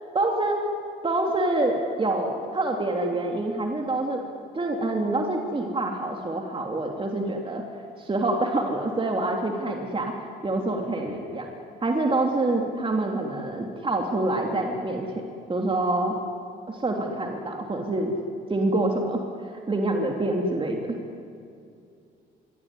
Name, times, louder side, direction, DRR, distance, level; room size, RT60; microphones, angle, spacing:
voice 1, 0.1-0.6 1.0-4.2 4.5-10.1 10.4-11.5 11.8-15.1 15.5-16.2 16.7-18.1 18.5-21.0, right 2 dB, 25° right, 1 dB, 3.2 m, -26 dB
25.0 x 23.5 x 10.0 m, 2.4 s
cardioid pair, 90°, 20 cm